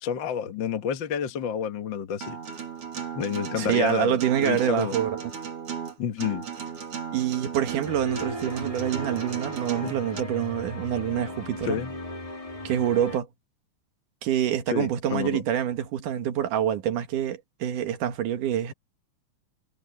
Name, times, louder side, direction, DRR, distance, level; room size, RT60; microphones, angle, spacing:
voice 1, 0.0-2.4 3.1-5.0 6.0-6.4 9.8-10.0 11.6-11.9 14.7-15.4, left 8 dB, 50° left, 1.5 m, -29 dB
Acoustic guitar, 2.2-10.2, right 7 dB, 50° right, 3.0 m, -36 dB
voice 2, 3.6-5.2 7.1-11.8 12.6-13.3 14.2-18.7, right 10 dB, 85° right, 3.1 m, -26 dB
sound 1, 7.8-13.2, left 1 dB, 10° left, 2.3 m, -37 dB
omnidirectional pair, 3.5 m